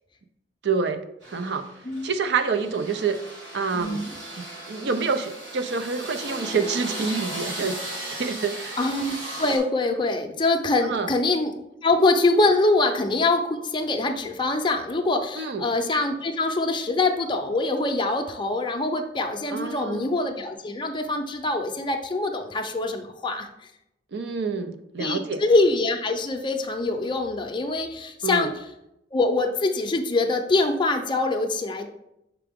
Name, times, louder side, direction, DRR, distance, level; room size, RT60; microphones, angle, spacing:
voice 1, 0.6-1.7 2.0-3.2 3.5-4.0 4.4-8.8 10.8-11.1 15.3-15.7 19.5-20.1 24.1-25.4 28.2-28.5, right 5 dB, 65° right, 10 dB, 0.5 m, -27 dB
sound 1, 1.2-9.6, right 1 dB, 85° right, 1.6 m, -36 dB
voice 2, 3.7-4.1 8.8-11.5 11.8-23.5 25.0-28.5 29.1-31.9, left 2 dB, 25° left, 4 dB, 0.6 m, -24 dB
5.9 x 4.7 x 3.5 m, 0.84 s
head